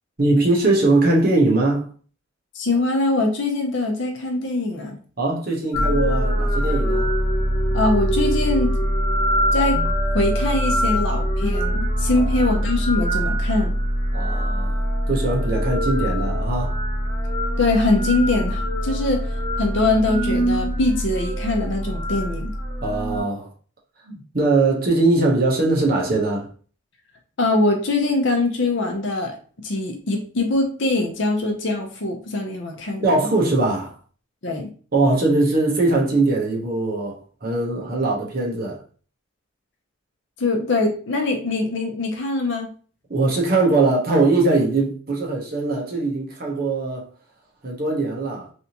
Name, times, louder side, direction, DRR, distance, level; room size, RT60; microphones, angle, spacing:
voice 1, 0.2-1.9 5.2-7.1 12.1-12.3 14.1-16.8 22.8-23.5 24.0-26.5 33.0-33.9 34.9-38.8 43.1-47.1 47.6-48.5, right 2 dB, 45° right, 0.9 m, -21 dB
voice 2, 2.5-5.0 7.7-8.8 9.5-9.8 10.1-13.7 17.6-22.5 27.4-29.4 29.6-33.3 34.4-34.7 40.4-42.7, left 2 dB, 60° left, 0.7 m, -23 dB
sound 1, 5.7-23.2, equal, 25° left, 0.9 m, -23 dB
3.4 x 2.7 x 2.9 m
head